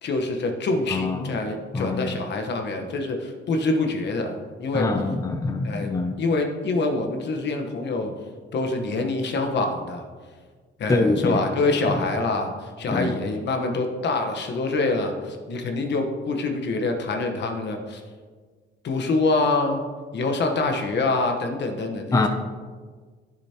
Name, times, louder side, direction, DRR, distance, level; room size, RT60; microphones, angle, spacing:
voice 1, 0.0-4.9 5.6-5.9 6.2-8.1 8.5-10.0 10.8-18.0 18.8-19.8 20.1-22.3, left 3 dB, 60° left, 4 dB, 1.2 m, -25 dB
voice 2, 0.9-1.4 1.7-2.1 4.7-6.2 10.9-11.4 11.9-12.0 12.9-13.1 22.1-22.3, left 3 dB, 15° left, 6 dB, 0.6 m, -24 dB
11.5 x 7.0 x 2.9 m, 1.5 s
cardioid pair, 90°, 20 cm